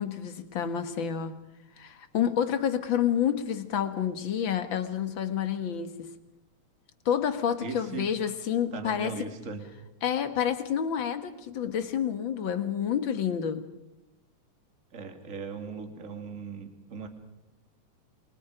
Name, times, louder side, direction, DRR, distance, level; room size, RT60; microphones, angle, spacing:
voice 1, 0.0-1.4 1.8-6.1 7.1-9.2 10.0-13.7, left 8 dB, 50° left, 1.9 m, -29 dB
voice 2, 7.6-8.1 8.7-9.6 14.9-17.1, right 4 dB, 25° right, 2.7 m, -38 dB
29.0 x 25.5 x 5.0 m
omnidirectional pair, 3.4 m